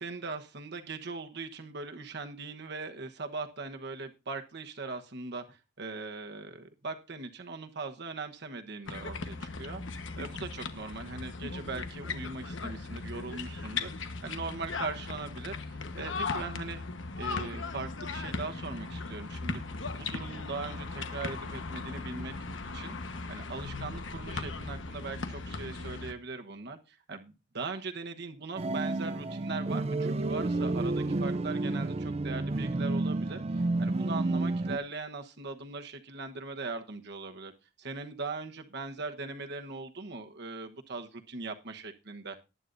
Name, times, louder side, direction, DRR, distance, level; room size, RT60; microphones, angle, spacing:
voice 1, 0.0-9.8 10.2-16.8 17.2-19.6 20.0-22.3 22.7-33.4 33.8-37.5 37.8-42.4, right 3 dB, 60° right, 6 dB, 1.1 m, -40 dB
sound 1, 8.8-26.1, left 3 dB, 75° left, 1.2 m, -38 dB
sound 2, 28.6-34.8, right 2 dB, 35° right, 0.5 m, -30 dB
19.5 x 9.2 x 2.6 m, 0.28 s
head